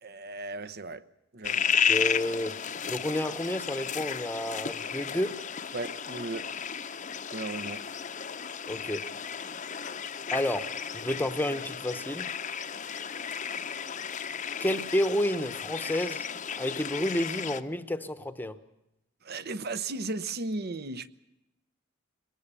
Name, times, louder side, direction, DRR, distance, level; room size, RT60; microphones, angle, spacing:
voice 1, 0.0-1.0 1.3-1.7 5.7-6.5 7.3-7.8 19.3-21.1, right 3 dB, 50° right, 0.9 m, -35 dB
sound 1, 1.4-17.6, left 7 dB, 35° left, 0.8 m, -33 dB
voice 2, 1.9-2.6 2.9-5.4 8.7-9.1 10.3-12.3 14.6-16.2 16.6-18.6, left 1 dB, 10° left, 1.0 m, -30 dB
22.5 x 19.0 x 6.9 m
head